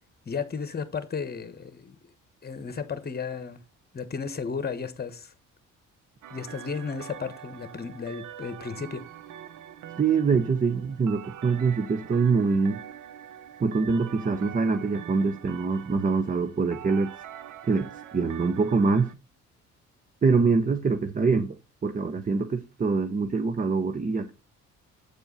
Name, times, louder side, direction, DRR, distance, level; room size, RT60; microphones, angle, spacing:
voice 1, 0.3-2.0 2.4-3.6 3.9-5.3 6.3-9.0, left 5 dB, 30° left, 1.2 m, -34 dB
sound 1, 6.2-19.1, right 10 dB, 85° right, 0.7 m, -44 dB
voice 2, 10.0-12.8 13.6-17.1 17.6-17.9 18.1-19.1 20.2-21.6 21.8-24.3, right 4 dB, 25° right, 0.8 m, -24 dB
8.3 x 4.5 x 5.5 m
cardioid pair, 90°, 30 cm